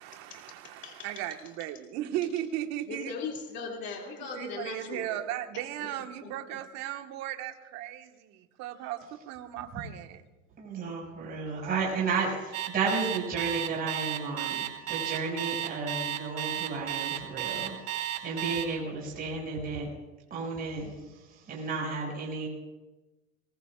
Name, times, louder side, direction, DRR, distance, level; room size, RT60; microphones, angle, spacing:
voice 1, 0.0-3.1 4.3-10.2, right 12 dB, 40° right, 6 dB, 1.5 m, -36 dB
voice 2, 2.8-5.3 5.5-5.9 6.2-6.3, left 4 dB, 25° left, 0 dB, 2.6 m, -39 dB
voice 3, 10.6-17.8 18.2-19.9 20.3-22.5, right 4 dB, 20° right, -3 dB, 5.7 m, -33 dB
Alarm, 12.5-18.6, right 13 dB, 80° right, 4.7 m, -32 dB
23.5 x 21.0 x 2.5 m, 1.1 s
supercardioid pair, 145°, 41 cm